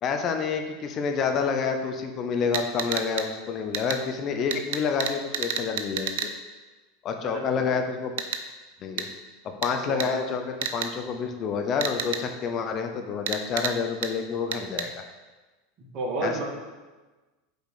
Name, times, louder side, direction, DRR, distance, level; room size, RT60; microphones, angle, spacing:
voice 1, 0.0-6.3 7.0-8.1 8.8-9.1 9.6-15.0 16.2-16.4, left 6 dB, 40° left, 5 dB, 0.8 m, -28 dB
sound 1, 2.5-3.3 3.7-4.0 4.5-6.3 8.2-8.4 9.0-9.1 9.6-9.7 10.0-10.1 10.6-10.9 11.8-12.2 13.3-13.7 14.0-14.1 14.5-14.9, right 8 dB, 70° right, 0.7 m, -29 dB
voice 2, 7.2-7.8 9.8-10.2 15.8-16.4, right 2 dB, 45° right, -2 dB, 2.5 m, -32 dB
6.4 x 5.0 x 6.5 m, 1.2 s
hypercardioid pair, 90°, 0 cm